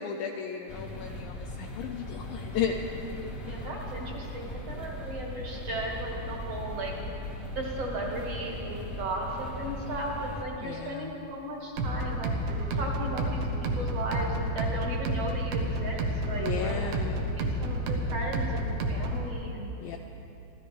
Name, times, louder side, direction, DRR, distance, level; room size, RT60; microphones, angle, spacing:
voice 1, 0.0-2.8 10.6-11.1 16.3-17.2 19.8-20.0, left 8 dB, 80° left, 3 dB, 2.1 m, -34 dB
sound 1, 0.7-10.4, left 1 dB, 65° left, 0.8 m, -38 dB
voice 2, 3.5-6.9 7.6-16.8 17.1-19.7, right 1 dB, 45° right, -2 dB, 2.4 m, -36 dB
sound 2, 11.8-19.3, right 1 dB, 75° right, 3.0 m, -30 dB
26.5 x 14.5 x 3.4 m, 2.9 s
omnidirectional pair, 4.7 m